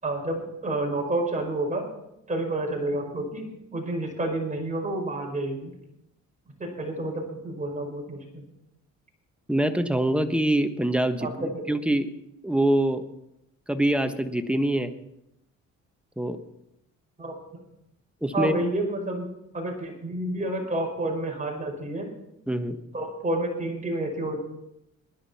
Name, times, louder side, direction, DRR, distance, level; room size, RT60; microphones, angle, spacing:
voice 1, 0.0-1.9 2.3-5.7 6.6-8.5 11.2-11.6 17.2-17.3 18.3-22.1 22.9-24.4, right 1 dB, 25° right, 1 dB, 5.5 m, -30 dB
voice 2, 9.5-11.2 11.7-12.1 12.4-13.0 13.7-14.9 16.2-16.4 18.2-18.5 22.5-22.8, right 1 dB, 5° right, 7 dB, 1.3 m, -24 dB
20.5 x 11.0 x 4.3 m, 0.85 s
cardioid pair, 90°, 30 cm